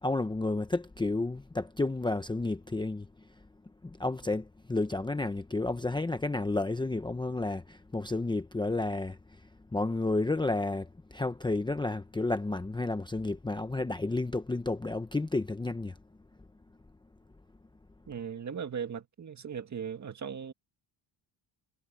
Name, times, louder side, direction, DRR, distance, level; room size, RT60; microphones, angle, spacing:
voice 1, 0.0-3.1 3.8-9.2 9.7-15.9, left 2 dB, 10° left, 0.8 m, -31 dB
voice 2, 18.1-20.5, right 7 dB, 35° right, 2.0 m, -38 dB
cardioid pair, 135°, 46 cm